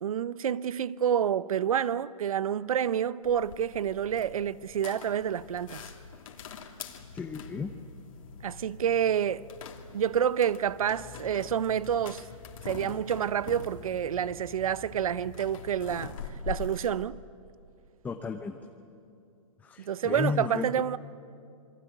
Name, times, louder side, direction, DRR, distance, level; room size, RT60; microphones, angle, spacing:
voice 1, 0.0-5.8 8.4-9.5 9.9-12.2 12.6-16.1 16.5-17.2 19.8-21.0, right 9 dB, 80° right, 0.8 m, -28 dB
sound 1, 3.2-17.0, left 5 dB, 70° left, 3.0 m, -44 dB
voice 2, 7.1-7.7 18.0-18.6 19.6-20.7, left 5 dB, 10° left, 0.8 m, -33 dB
sound 2, 10.5-17.8, left 7 dB, 25° left, 2.4 m, -53 dB
28.0 x 22.0 x 9.2 m
hypercardioid pair, 150°, 18 cm